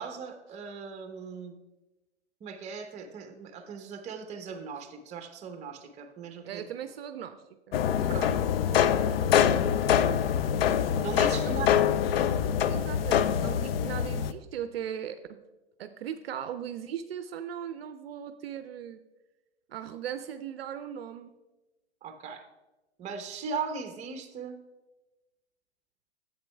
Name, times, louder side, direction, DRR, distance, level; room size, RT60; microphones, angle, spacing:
voice 1, 0.0-1.5 2.4-6.6 8.1-8.4 11.0-11.7 12.0-12.1 22.0-22.4 23.0-24.6, right 5 dB, 20° right, 7 dB, 0.8 m, -38 dB
voice 2, 6.4-9.9 11.3-11.8 12.7-15.4 15.8-19.0 19.7-21.4, right 9 dB, 60° right, 10 dB, 0.5 m, -39 dB
sound 1, 7.7-14.3, left 9 dB, 60° left, 0.5 m, -25 dB
10.5 x 7.9 x 2.2 m, 1.1 s
figure-of-eight pair, 110°, 34 cm